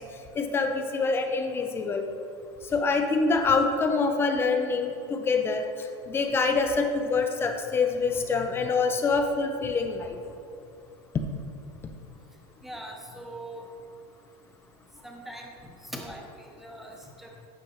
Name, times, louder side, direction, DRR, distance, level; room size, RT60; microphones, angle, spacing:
voice 1, 0.4-2.0 2.7-5.6 6.1-10.2, left 4 dB, 20° left, 5 dB, 0.4 m, -25 dB
voice 2, 12.6-13.6 15.0-15.5 15.8-17.5, right 1 dB, ahead, 0 dB, 0.8 m, -41 dB
8.8 x 5.3 x 3.1 m, 2.6 s
cardioid pair, 160°, 13 cm